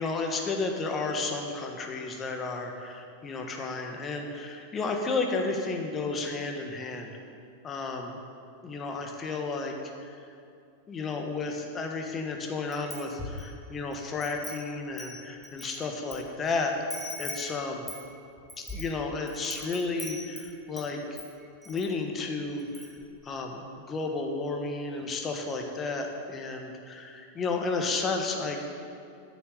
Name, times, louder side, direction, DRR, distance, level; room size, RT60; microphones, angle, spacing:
voice 1, 0.0-7.2 7.6-8.2 8.6-9.7 10.0-10.2 10.9-16.9 17.2-17.8 18.6-21.0 21.6-22.9 23.2-28.6, left 3 dB, 25° left, 3 dB, 1.4 m, -32 dB
Wind chime, 12.7-13.5 13.9-16.2 16.5-16.6 16.9-20.9 21.2-21.9 22.2-22.3 22.6-23.0, left 2 dB, 5° left, 1.9 m, -41 dB
9.5 x 6.9 x 8.3 m, 2.4 s
figure-of-eight pair, 90°, 0 cm